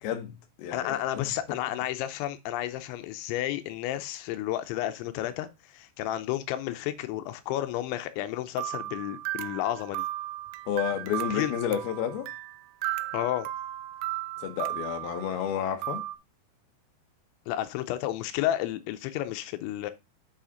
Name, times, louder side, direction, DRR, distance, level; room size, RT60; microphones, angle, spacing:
voice 1, 0.0-0.3 0.6-1.3 10.7-12.3 14.4-16.0, left 9 dB, 70° left, 2.8 m, -31 dB
voice 2, 0.7-10.1 11.3-11.5 13.1-13.5 17.5-19.9, left 13 dB, 90° left, 3.0 m, -31 dB
sound 1, 8.6-16.2, right 16 dB, 85° right, 2.9 m, -35 dB
8.7 x 4.9 x 3.8 m
omnidirectional pair, 5.3 m